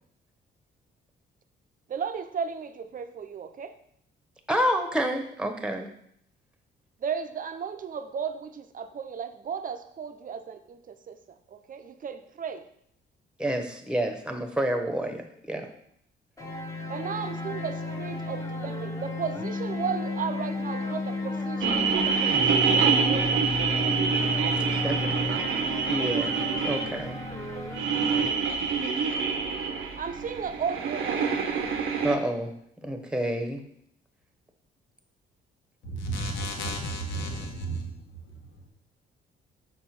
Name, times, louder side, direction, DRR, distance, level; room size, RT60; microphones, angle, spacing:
voice 1, 1.9-3.7 7.0-11.2 11.5-12.7 16.9-24.0 30.0-31.3, right 6 dB, 45° right, 9 dB, 0.7 m, -35 dB
voice 2, 4.5-5.9 13.4-15.7 24.5-25.1 25.9-27.2 32.0-32.5 32.8-33.6, right 1 dB, 5° right, 4 dB, 1.1 m, -29 dB
sound 1, 16.4-28.2, left 2 dB, 15° left, 1.2 m, -33 dB
sound 2, 21.6-32.2, right 5 dB, 85° right, 1.0 m, -26 dB
voice 3, 36.0-38.7, right 1 dB, 75° left, 2 dB, 1.4 m, -33 dB
6.1 x 4.4 x 5.9 m, 0.69 s
cardioid pair, 90°, 20 cm